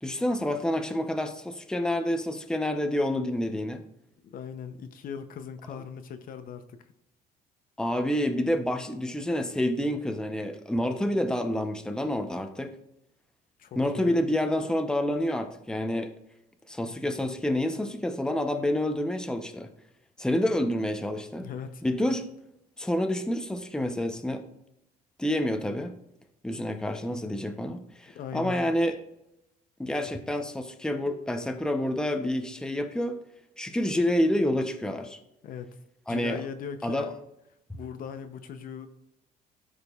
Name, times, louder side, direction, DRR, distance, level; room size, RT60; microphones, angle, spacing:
voice 1, 0.0-3.8 7.8-12.7 13.8-16.1 16.7-19.7 20.2-21.5 21.8-22.3 22.8-24.4 25.2-26.0 26.4-29.0 29.8-33.2 33.6-35.2 36.1-36.4 36.8-37.1, left 1 dB, 5° left, 6 dB, 0.8 m, -28 dB
voice 2, 4.2-6.8 13.6-14.2 21.4-21.8 28.1-28.6 35.4-35.8 36.1-37.1 37.7-38.9, left 7 dB, 55° left, 9 dB, 0.7 m, -39 dB
13.0 x 5.1 x 2.4 m, 0.84 s
cardioid pair, 110°, 17 cm